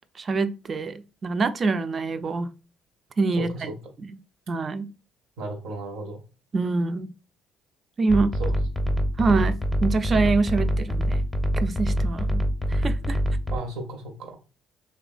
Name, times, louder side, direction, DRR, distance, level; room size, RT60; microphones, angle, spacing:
voice 1, 0.1-2.5 3.2-3.7 4.0-4.1 4.5-4.9 6.5-7.1 8.0-8.3 9.2-11.2 11.6-12.4 12.7-13.2, right 3 dB, 40° right, 0.3 m, -25 dB
voice 2, 3.4-3.8 5.4-6.2 8.4-8.5 13.5-14.4, right 2 dB, 80° right, 0.7 m, -34 dB
sound 1, 8.1-13.6, equal, 5° left, 0.6 m, -25 dB
3.1 x 2.2 x 2.4 m
supercardioid pair, 75°, 0 cm